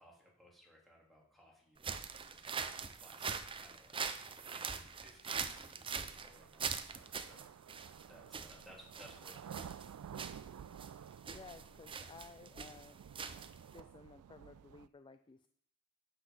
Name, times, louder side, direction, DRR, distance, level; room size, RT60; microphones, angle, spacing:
voice 1, 0.0-9.8, equal, ahead, -3 dB, 3.0 m, -62 dB
sound 1, 1.8-13.8, right 6 dB, 25° right, 0.6 m, -43 dB
sound 2, 5.4-14.9, right 8 dB, 80° right, 0.3 m, -53 dB
voice 2, 11.3-13.0 13.7-15.5, left 4 dB, 20° left, 11 dB, 0.3 m, -55 dB
9.6 x 7.9 x 5.7 m, 0.67 s
head